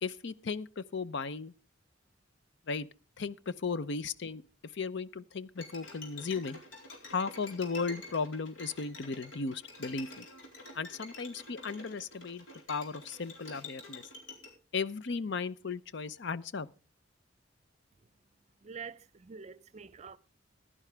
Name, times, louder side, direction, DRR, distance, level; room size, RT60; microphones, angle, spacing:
voice 1, 0.0-1.5 2.7-2.9 3.2-4.4 4.7-6.6 7.0-10.2 10.7-14.0 14.7-16.7, left 4 dB, 65° left, 0.6 m, -36 dB
Bowed string instrument, 5.6-14.5, left 2 dB, 85° left, 4.2 m, -48 dB
voice 2, 18.6-20.2, right 5 dB, 35° right, 0.5 m, -46 dB
15.5 x 11.0 x 3.4 m
head